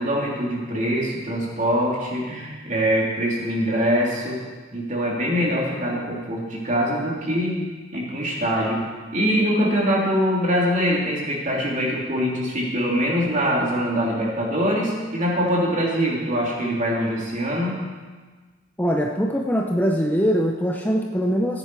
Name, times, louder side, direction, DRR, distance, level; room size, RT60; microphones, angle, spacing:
voice 1, 0.0-4.4 4.7-7.6 7.9-8.8 9.1-17.8, equal, 40° right, -3 dB, 3.2 m, -23 dB
voice 2, 18.8-21.6, equal, 10° left, 1 dB, 0.7 m, -22 dB
15.0 x 10.0 x 4.8 m, 1.4 s
head